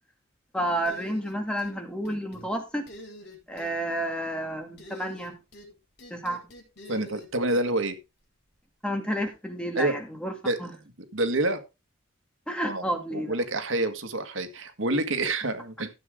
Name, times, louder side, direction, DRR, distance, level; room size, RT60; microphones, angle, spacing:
voice 1, 0.5-2.9 3.5-5.4 6.1-6.4 8.8-10.3 10.6-10.7 12.5-13.4, equal, 5° left, 4 dB, 2.2 m, -30 dB
sound 1, 0.9-1.8 2.1-2.5 2.9-3.7 4.8-5.7 6.0-7.6, left 1 dB, 55° left, 4.9 m, -46 dB
voice 2, 6.9-7.9 9.8-10.0 10.4-10.6 11.1-11.6 12.6-12.8 13.1-15.9, right 2 dB, 70° right, 8 dB, 1.8 m, -27 dB
14.0 x 7.8 x 3.7 m, 0.26 s
head